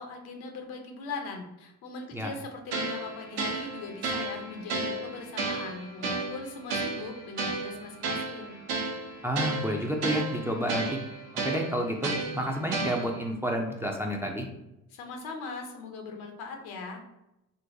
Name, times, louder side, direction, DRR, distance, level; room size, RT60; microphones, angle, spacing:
voice 1, 0.0-8.6 14.9-17.0, left 3 dB, 70° left, 3 dB, 0.8 m, -40 dB
sound 1, 2.7-13.3, right 3 dB, 65° right, 0.7 m, -33 dB
voice 2, 9.2-10.9 11.4-14.5, equal, 5° right, 1 dB, 0.4 m, -30 dB
3.9 x 2.2 x 2.6 m, 0.90 s
hypercardioid pair, 55°, 39 cm